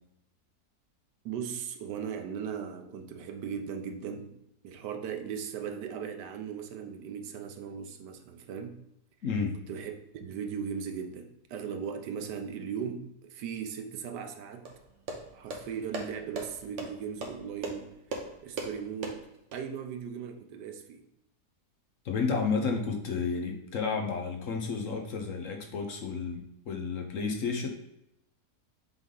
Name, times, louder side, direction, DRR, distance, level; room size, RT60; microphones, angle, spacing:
voice 1, 1.2-4.4 4.6-8.8 9.7-14.7 15.3-19.3 19.5-21.0, right 7 dB, 90° right, 6 dB, 1.3 m, -38 dB
voice 2, 9.2-9.5 22.0-26.4 26.7-27.7, left 5 dB, 60° left, 3 dB, 1.1 m, -31 dB
sound 1, 14.6-19.6, right 2 dB, 50° right, 1.2 m, -40 dB
7.3 x 3.5 x 3.8 m, 0.84 s
omnidirectional pair, 1.7 m